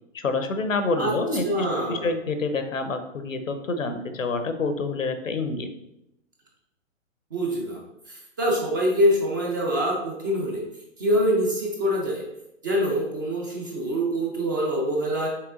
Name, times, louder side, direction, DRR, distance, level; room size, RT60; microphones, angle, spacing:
voice 1, 0.1-5.7, left 3 dB, 90° left, 8 dB, 0.8 m, -27 dB
voice 2, 1.4-2.1 7.3-7.8 8.1-10.6 11.0-12.2 12.6-15.3, equal, 15° right, -1 dB, 0.4 m, -25 dB
6.0 x 3.3 x 2.4 m, 0.84 s
figure-of-eight pair, 130°, 38 cm